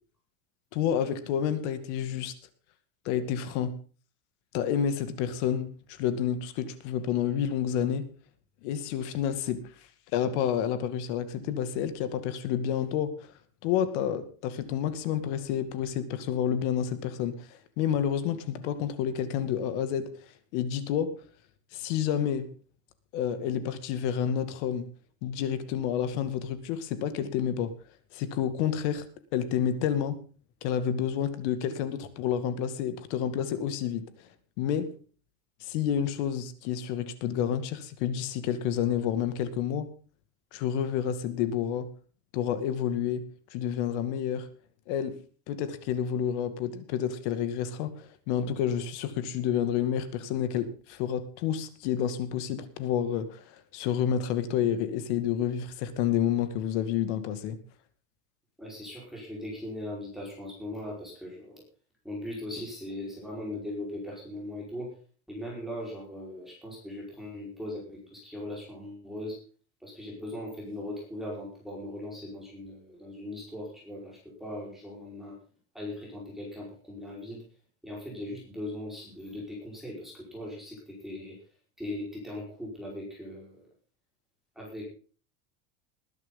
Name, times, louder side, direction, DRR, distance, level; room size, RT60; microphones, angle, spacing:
voice 1, 0.7-2.3 3.1-3.7 4.5-5.7 6.0-8.1 8.6-9.6 10.1-13.1 13.6-17.5 17.8-20.1 20.5-21.1 21.7-22.5 23.1-24.9 25.2-27.7 28.1-29.1 29.3-30.2 30.6-34.1 34.6-34.9 35.6-39.9 40.5-41.9 42.3-44.5 44.9-45.2 45.5-57.6, left 9 dB, 55° left, 12 dB, 2.2 m, -29 dB
voice 2, 58.6-61.6 62.0-64.9 65.3-69.4 69.8-75.4 75.7-77.4 77.8-81.4 81.8-83.6 84.5-84.9, left 1 dB, ahead, -4 dB, 4.9 m, -39 dB
20.5 x 11.0 x 3.9 m, 0.39 s
supercardioid pair, 175°, 42 cm